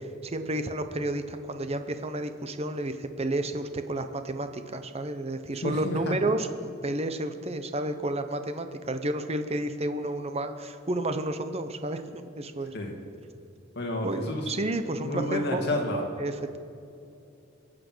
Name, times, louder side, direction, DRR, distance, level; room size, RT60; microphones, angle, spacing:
voice 1, 0.0-12.7 14.0-15.7 16.2-16.6, right 1 dB, 30° right, 8 dB, 0.9 m, -31 dB
voice 2, 5.6-6.3 12.7-13.0 13.8-14.5 15.0-16.0, left 1 dB, 55° left, 1 dB, 2.4 m, -30 dB
23.0 x 7.8 x 6.2 m, 2.6 s
head